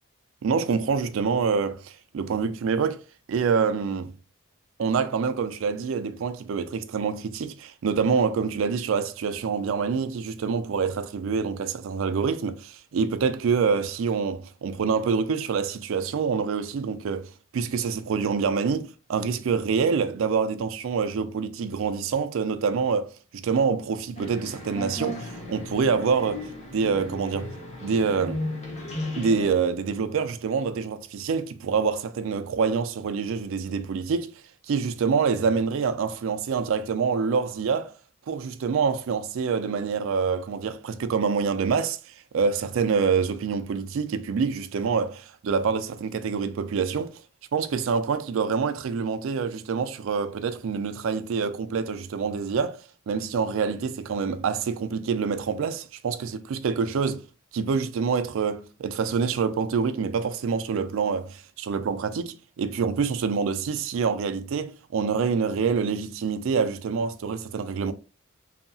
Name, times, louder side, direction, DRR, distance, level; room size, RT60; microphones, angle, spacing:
voice 1, 0.4-3.0 3.3-4.1 4.8-27.5 27.8-28.4 29.2-34.3 34.7-37.9 38.3-47.2 47.5-57.2 57.5-67.9, right 5 dB, 65° right, 0.3 m, -26 dB
sound 1, 24.2-29.5, left 1 dB, 30° left, 0.6 m, -35 dB
2.7 x 2.6 x 2.3 m
head